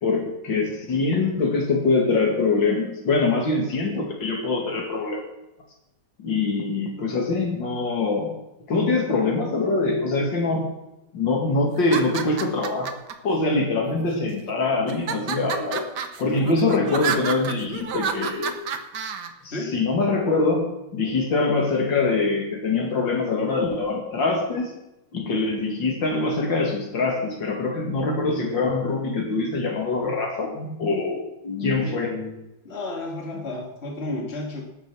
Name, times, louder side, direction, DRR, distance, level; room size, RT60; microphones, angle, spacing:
voice 1, 0.0-5.2 6.2-8.3 8.7-10.7 11.1-12.9 13.2-15.8 16.2-18.6 19.4-20.7 20.9-24.7 25.1-32.4, left 3 dB, 85° left, 1 dB, 3.0 m, -24 dB
sound 1, 11.8-13.1 13.9-14.4 14.9-19.3, right 7 dB, 70° right, 1.6 m, -30 dB
voice 2, 32.6-34.6, left 2 dB, 35° left, 0 dB, 2.6 m, -32 dB
19.0 x 6.6 x 6.2 m, 0.92 s
omnidirectional pair, 2.0 m